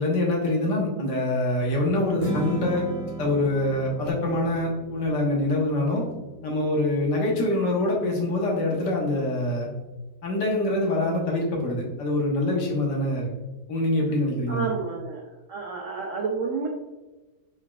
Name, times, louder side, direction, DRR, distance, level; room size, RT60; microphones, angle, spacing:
voice 1, 0.0-2.9 3.2-6.0 6.4-9.7 10.2-13.3 13.7-14.7, left 1 dB, 60° left, -2 dB, 1.6 m, -25 dB
Strum, 2.2-8.5, right 1 dB, 35° right, 0.5 m, -36 dB
voice 2, 14.5-15.2 15.5-16.7, right 5 dB, 85° right, -2 dB, 0.6 m, -29 dB
4.6 x 4.4 x 2.3 m, 1.1 s
omnidirectional pair, 2.2 m